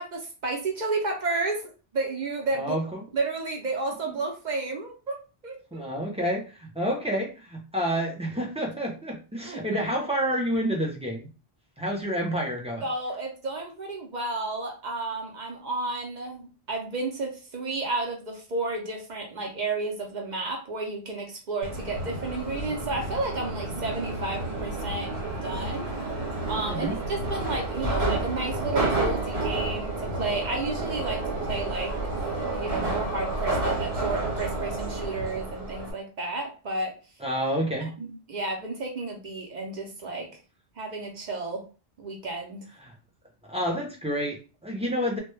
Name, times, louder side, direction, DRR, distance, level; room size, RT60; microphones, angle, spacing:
voice 1, 0.0-2.8 3.1-5.2 5.4-5.8 9.4-9.8 12.8-25.1 25.4-25.9 26.5-32.0 32.5-37.0 38.0-40.3 40.8-41.7 42.0-42.6, right 3 dB, 50° right, 1 dB, 0.6 m, -32 dB
voice 2, 2.6-3.0 5.7-11.3 11.8-12.8 26.7-26.9 37.2-37.9 42.8-42.9 43.4-45.2, equal, 10° right, -1 dB, 0.4 m, -29 dB
Subway metro underground, 21.6-35.9, right 2 dB, 75° right, 1.1 m, -30 dB
2.1 x 2.1 x 3.1 m, 0.33 s
omnidirectional pair, 1.1 m